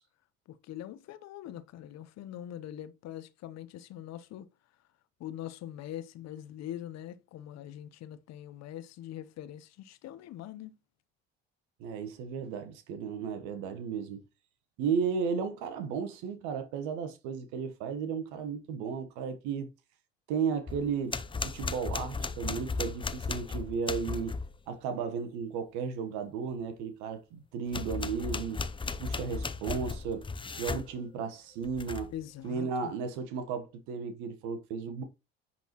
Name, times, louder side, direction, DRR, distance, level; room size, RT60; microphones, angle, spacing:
voice 1, 0.5-4.5 5.2-10.7 32.1-32.9, left 12 dB, 55° left, 0.9 m, -43 dB
voice 2, 11.8-14.2 14.8-19.7 20.3-21.2 21.5-24.4 24.7-28.6 29.0-30.3 30.6-32.1 32.4-35.0, right 6 dB, 70° right, 1.2 m, -34 dB
sound 1, 20.7-24.6 27.7-30.9 31.6-32.2, left 4 dB, 15° left, 0.6 m, -36 dB
10.5 x 4.1 x 3.0 m
hypercardioid pair, 65°, 31 cm